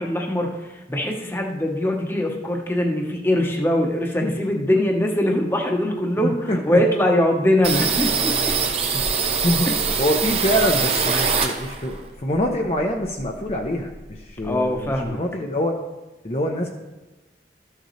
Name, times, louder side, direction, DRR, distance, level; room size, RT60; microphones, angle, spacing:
voice 1, 0.0-8.5 9.7-9.8 14.4-15.2, left 1 dB, 15° left, 1 dB, 0.9 m, -22 dB
voice 2, 6.2-6.6 9.2-9.7 10.0-15.8 16.2-16.7, equal, 35° left, 1 dB, 0.7 m, -25 dB
sound 1, 7.6-12.0 12.3-13.7 14.0-14.1 14.4-15.1, right 5 dB, 35° right, 0.7 m, -23 dB
13.5 x 6.5 x 3.2 m, 1.1 s
head